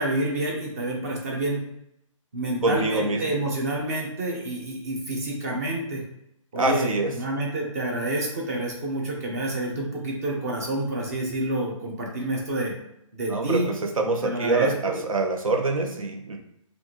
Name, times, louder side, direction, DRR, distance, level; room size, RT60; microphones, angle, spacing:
voice 1, 0.0-1.6 2.3-6.0 6.5-12.7 13.1-13.7 14.2-15.0, right 1 dB, 30° right, -1 dB, 0.9 m, -28 dB
voice 2, 2.6-3.2 6.6-7.2 13.3-16.4, right 2 dB, 90° right, 3 dB, 0.9 m, -25 dB
4.7 x 2.6 x 2.9 m, 0.80 s
hypercardioid pair, 175°, 17 cm